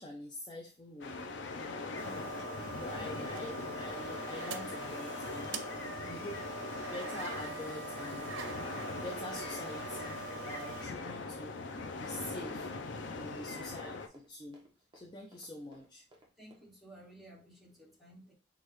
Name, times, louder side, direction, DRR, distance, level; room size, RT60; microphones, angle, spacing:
voice 1, 0.0-2.1 2.8-5.7 6.1-6.4 6.9-8.3 9.0-11.5 12.0-12.7 13.1-14.6 14.9-16.0, left 1 dB, 25° left, -1 dB, 0.5 m, -46 dB
sound 1, 1.0-14.1, left 3 dB, 70° left, 0.6 m, -41 dB
Run, 1.8-16.7, right 1 dB, 25° right, 1.0 m, -62 dB
sound 2, 2.0-10.9, right 5 dB, 90° right, 0.6 m, -44 dB
voice 2, 16.4-18.3, right 1 dB, ahead, -3 dB, 1.4 m, -57 dB
6.3 x 2.4 x 3.1 m, 0.34 s
head